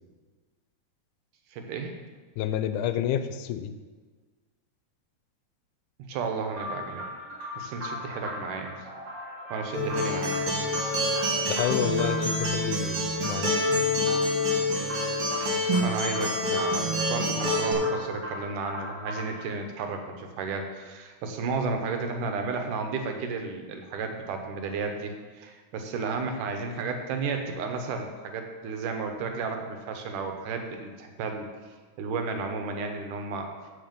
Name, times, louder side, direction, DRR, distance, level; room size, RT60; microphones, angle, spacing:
voice 1, 1.5-1.9 6.1-7.0 7.6-8.7 9.5-10.8 15.6-31.5 32.0-33.5, right 4 dB, 85° right, 4 dB, 2.6 m, -33 dB
voice 2, 2.4-3.7 11.5-13.5, left 10 dB, 80° left, 10 dB, 2.0 m, -29 dB
sound 1, 6.5-19.5, left 1 dB, 45° right, 4.2 m, -38 dB
Acoustic guitar, 9.7-17.7, left 1 dB, 65° right, 3.6 m, -27 dB
14.5 x 4.8 x 5.3 m, 1.4 s
omnidirectional pair, 3.6 m